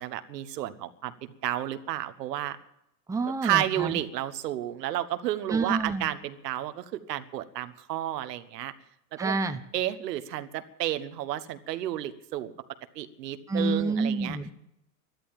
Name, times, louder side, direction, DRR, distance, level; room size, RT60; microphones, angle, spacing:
voice 1, 0.0-2.6 3.4-8.7 9.1-9.4 9.7-12.5 12.9-14.4, right 13 dB, 90° right, 11 dB, 1.4 m, -31 dB
voice 2, 3.1-4.0 5.5-6.1 9.2-9.6 13.5-14.5, right 3 dB, 5° right, 9 dB, 0.8 m, -28 dB
12.5 x 12.5 x 8.9 m, 0.82 s
supercardioid pair, 120°, 48 cm